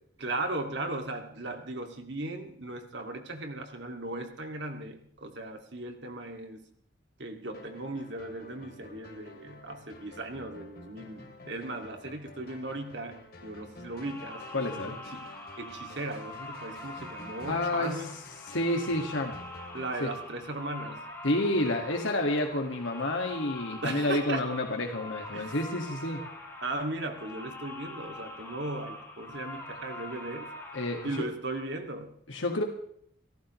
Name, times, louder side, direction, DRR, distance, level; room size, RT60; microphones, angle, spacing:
voice 1, 0.2-6.7 7.2-15.3 15.6-18.2 19.7-21.0 23.8-24.5 25.3-25.5 26.6-30.5 31.0-32.1, right 2 dB, 60° right, 5 dB, 2.3 m, -37 dB
sound 1, 7.5-21.1, left 2 dB, 50° left, 2.9 m, -51 dB
sound 2, 13.8-31.2, left 1 dB, 10° left, 3.3 m, -44 dB
voice 2, 14.5-15.0 17.5-18.0 18.5-19.4 20.0-20.1 21.2-26.2 30.7-31.3 32.3-32.6, left 1 dB, 75° left, 2 dB, 2.0 m, -29 dB
29.0 x 14.0 x 3.2 m, 0.67 s
head